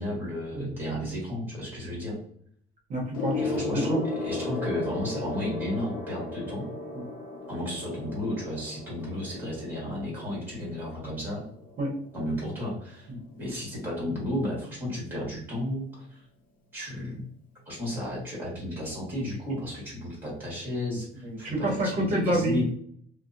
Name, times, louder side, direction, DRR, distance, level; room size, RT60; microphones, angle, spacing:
voice 1, 0.0-2.2 3.4-4.0 4.2-6.7 7.5-11.4 12.1-13.1 13.4-16.2 16.7-17.2 17.7-22.6, left 1 dB, 10° right, -5 dB, 1.4 m, -33 dB
voice 2, 2.9-4.0 6.9-7.1 11.8-11.9 13.1-13.2 21.2-22.6, right 1 dB, 50° right, -1 dB, 0.9 m, -28 dB
Gong, 3.1-12.9 13.9-14.1, left 3 dB, 55° left, 0.6 m, -36 dB
2.7 x 2.1 x 2.5 m, 0.63 s
cardioid pair, 150°, 17 cm